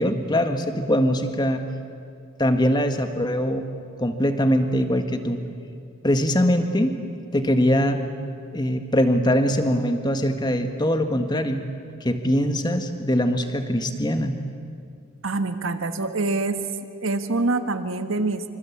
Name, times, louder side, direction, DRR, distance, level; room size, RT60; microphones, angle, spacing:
voice 1, 0.0-1.6 2.4-3.6 4.0-5.4 6.0-7.0 7.3-8.0 8.5-11.6 12.0-14.4, equal, 20° left, 7 dB, 1.7 m, -22 dB
voice 2, 15.2-16.6 17.0-18.4, right 3 dB, 75° right, 9 dB, 1.5 m, -25 dB
27.0 x 25.5 x 8.6 m, 2.3 s
head